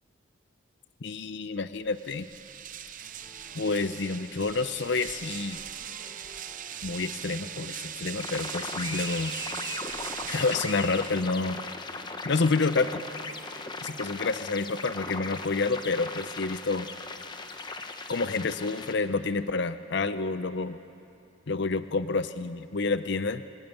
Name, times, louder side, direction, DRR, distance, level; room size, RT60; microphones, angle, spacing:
voice 1, 1.0-2.3 3.5-5.6 6.8-9.4 10.3-11.6 12.2-13.0 13.8-16.9 18.1-20.8 21.5-23.4, left 3 dB, 55° left, 12 dB, 0.6 m, -29 dB
sound 1, 1.9-11.6, right 10 dB, 40° right, 0.6 m, -40 dB
sound 2, 3.0-14.1, right 1 dB, ahead, 5.8 m, -52 dB
sound 3, 8.2-18.9, left 3 dB, 20° left, 0.9 m, -38 dB
23.5 x 18.0 x 9.0 m, 2.7 s
head